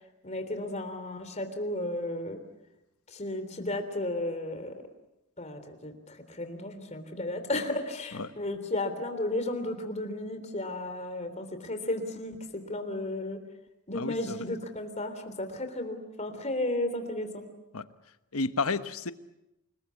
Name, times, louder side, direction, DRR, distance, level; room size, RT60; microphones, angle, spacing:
voice 1, 0.2-2.4 3.1-4.7 5.4-13.4 13.9-17.4, left 1 dB, 30° left, 8 dB, 3.4 m, -34 dB
voice 2, 13.9-14.4 17.7-17.8 18.3-19.1, left 3 dB, 75° left, 11 dB, 1.2 m, -31 dB
29.0 x 20.5 x 8.4 m, 0.92 s
head